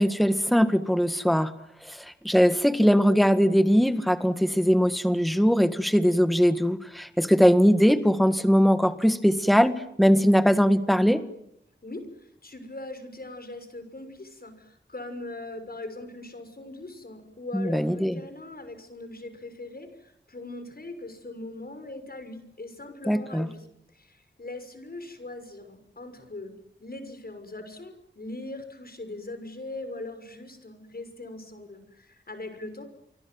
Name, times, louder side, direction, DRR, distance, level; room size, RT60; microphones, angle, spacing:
voice 1, 0.0-1.5 1.8-11.2 17.5-18.1 23.1-23.5, equal, ahead, 10 dB, 1.8 m, -21 dB
voice 2, 11.8-23.7 23.9-26.5 26.8-32.8, left 2 dB, 55° left, 9 dB, 6.0 m, -40 dB
29.0 x 24.5 x 7.9 m, 0.78 s
wide cardioid pair, 65°, 19 cm